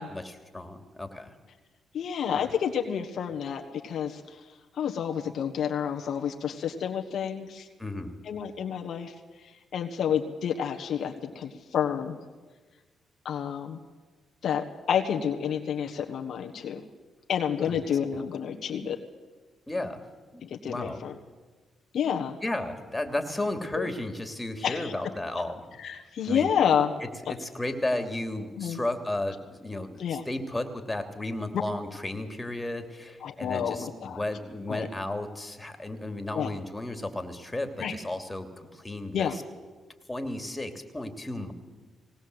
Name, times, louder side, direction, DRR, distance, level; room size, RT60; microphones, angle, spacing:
voice 1, 0.0-1.3 2.3-2.4 7.8-8.2 17.7-17.8 18.1-18.2 19.7-20.0 20.3-21.0 22.4-25.7 26.3-26.5 27.0-39.4 40.1-41.5, left 1 dB, 15° left, 7 dB, 2.9 m, -34 dB
voice 2, 1.9-4.4 4.8-7.7 8.2-9.1 9.7-12.2 13.2-13.8 14.4-16.8 17.3-19.0 20.4-21.2 21.9-22.4 23.8-23.9 24.6-24.9 25.8-26.9 28.6-28.8 30.0-30.2 33.2-34.2 34.7-34.9 36.3-36.5 37.8-37.9 39.1-39.4, left 8 dB, 70° left, 4 dB, 1.5 m, -29 dB
19.5 x 18.5 x 8.0 m, 1.3 s
supercardioid pair, 60°, 0 cm